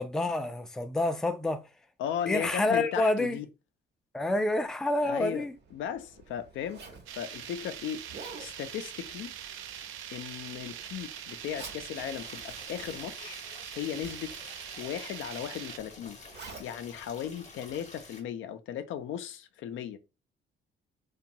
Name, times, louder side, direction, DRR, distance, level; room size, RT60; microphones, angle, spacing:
voice 1, 0.0-1.6 2.3-3.4 4.1-5.5, left 2 dB, 5° left, 0.3 m, -28 dB
voice 2, 2.0-3.5 5.0-5.4 5.7-6.8 7.2-8.0 8.4-9.3 10.1-13.4 13.7-14.4 14.8-16.2 16.6-20.0, left 9 dB, 75° left, 0.4 m, -36 dB
Zipper (clothing), 5.4-18.1, right 4 dB, 60° right, 0.9 m, -51 dB
sound 1, 7.1-15.8, right 10 dB, 80° right, 0.4 m, -43 dB
sound 2, 11.9-18.2, left 3 dB, 35° left, 0.8 m, -50 dB
2.9 x 2.3 x 2.6 m
cardioid pair, 90°, 20 cm